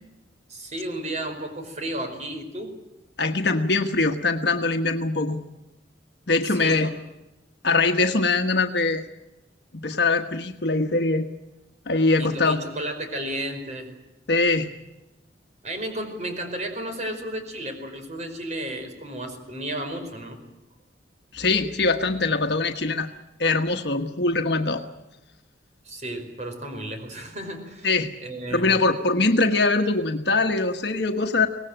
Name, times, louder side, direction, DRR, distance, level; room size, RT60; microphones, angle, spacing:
voice 1, 0.5-2.8 6.5-6.9 12.2-13.9 15.6-20.4 25.8-28.8, right 1 dB, 40° right, 6 dB, 5.0 m, -33 dB
voice 2, 3.2-5.4 6.3-6.9 7.6-9.0 9.8-11.3 11.9-12.6 14.3-14.7 21.3-23.1 23.4-24.8 27.8-28.1 28.5-31.5, left 3 dB, 60° left, 5 dB, 1.3 m, -22 dB
24.5 x 18.5 x 9.0 m, 0.97 s
head